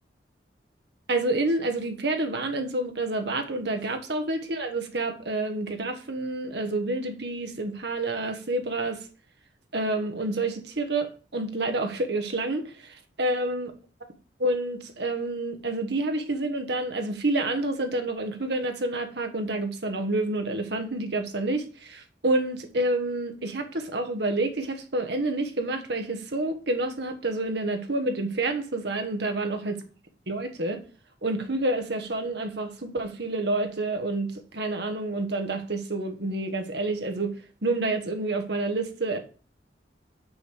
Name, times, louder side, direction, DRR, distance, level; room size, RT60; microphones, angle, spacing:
voice 1, 1.1-9.0 9.7-13.7 14.4-29.7 30.3-30.8 31.2-37.3 37.6-39.2, right 2 dB, 65° right, 1.3 m, -28 dB
6.2 x 5.0 x 6.3 m
head